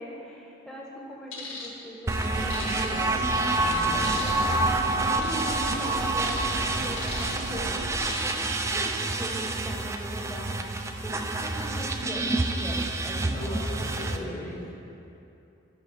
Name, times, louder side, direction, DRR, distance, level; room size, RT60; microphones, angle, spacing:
voice 1, 0.0-3.2 3.5-4.7 5.0-13.6 13.9-14.5, equal, 5° left, -4 dB, 1.1 m, -40 dB
sound 1, 1.3-1.7 2.5-3.1 4.0-4.6 5.2-5.5 6.2-6.4 7.0-7.5 8.1-8.5 8.9-9.1, left 4 dB, 75° left, 2.1 m, -39 dB
sound 2, 2.1-14.2, right 2 dB, 15° right, 0.3 m, -28 dB
sound 3, 2.1-8.0, right 2 dB, 45° right, 0.7 m, -35 dB
voice 2, 3.5-4.2 4.7-4.9 11.0-12.3 13.0-14.9, equal, 35° left, -3 dB, 1.5 m, -41 dB
12.0 x 4.1 x 5.6 m, 2.8 s
head